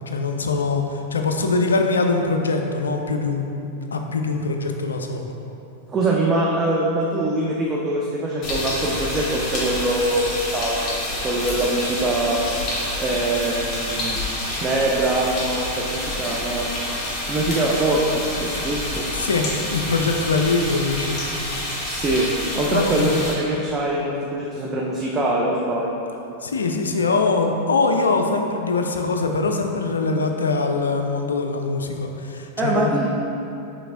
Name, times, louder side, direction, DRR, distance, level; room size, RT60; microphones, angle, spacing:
voice 1, 0.1-5.4 19.1-21.2 22.7-23.2 26.4-32.9, left 3 dB, 70° left, 4 dB, 0.3 m, -23 dB
voice 2, 5.9-11.0 11.2-12.4 13.0-14.2 14.6-16.7 17.3-19.1 21.8-26.1 32.6-33.1, right 2 dB, 20° right, -3 dB, 0.4 m, -23 dB
sound 1, 8.4-23.3, left 1 dB, 30° left, 1.1 m, -28 dB
5.9 x 3.2 x 2.5 m, 2.9 s
figure-of-eight pair, 90°, 0 cm